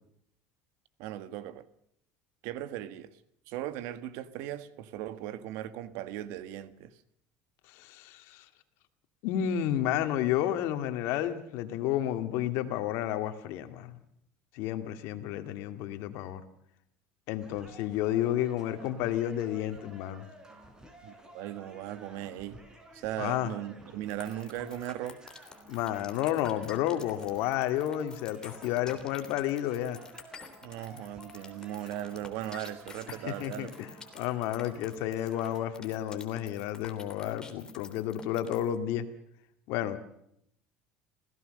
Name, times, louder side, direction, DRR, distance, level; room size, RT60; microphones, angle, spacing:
voice 1, 1.0-1.6 2.4-3.2 3.5-7.0 21.0-22.6 22.9-25.2 30.6-33.7, right 12 dB, 75° right, 1.6 m, -38 dB
voice 2, 7.7-8.5 9.2-13.9 14.5-16.4 17.3-20.2 23.2-23.5 25.7-30.0 33.2-33.9 34.1-39.1 39.7-40.0, left 12 dB, 75° left, 2.3 m, -31 dB
sound 1, 17.4-35.7, right 1 dB, 15° right, 4.8 m, -53 dB
sound 2, 24.1-38.8, left 4 dB, 15° left, 3.3 m, -48 dB
26.5 x 17.0 x 6.7 m
cardioid pair, 125°, 4 cm